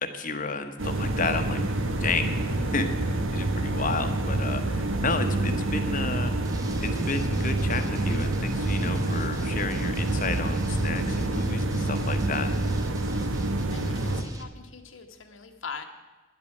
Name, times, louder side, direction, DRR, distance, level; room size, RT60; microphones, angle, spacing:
voice 1, 0.0-1.6 2.0-2.3 2.6-6.3 6.8-12.5, left 3 dB, 40° left, 7 dB, 1.1 m, -31 dB
sound 1, 0.8-14.2, right 2 dB, 80° right, 1.2 m, -27 dB
sound 2, 6.4-14.4, right 1 dB, 20° right, 1.0 m, -44 dB
voice 2, 13.7-15.8, left 5 dB, 85° left, 5 dB, 1.4 m, -41 dB
11.0 x 8.3 x 8.6 m, 1.2 s
head